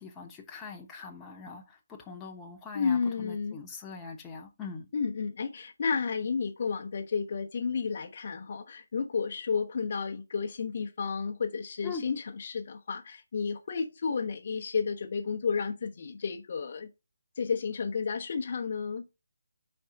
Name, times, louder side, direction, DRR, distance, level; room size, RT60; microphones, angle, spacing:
voice 1, 0.0-4.9 11.8-12.0, left 5 dB, 10° left, 1.0 m, -42 dB
voice 2, 2.7-3.6 4.9-16.9 17.4-19.0, left 5 dB, 45° left, 0.8 m, -32 dB
5.2 x 4.4 x 5.0 m
figure-of-eight pair, 150°, 0 cm